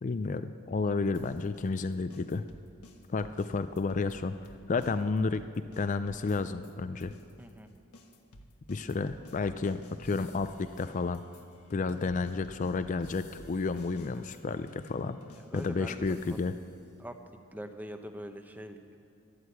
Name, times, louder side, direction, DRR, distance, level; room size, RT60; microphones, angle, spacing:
voice 1, 0.0-2.4 3.1-4.4 4.7-5.4 5.8-7.1 8.7-11.2 11.7-15.2 15.5-16.5, left 4 dB, 35° left, 11 dB, 0.3 m, -31 dB
sound 1, 1.1-6.7 7.0-16.7, left 1 dB, 85° left, 1.2 m, -53 dB
voice 2, 7.4-7.7 15.3-16.4 17.0-17.2 17.5-19.0, equal, 10° right, 6 dB, 0.8 m, -43 dB
13.0 x 11.5 x 8.2 m, 2.5 s
head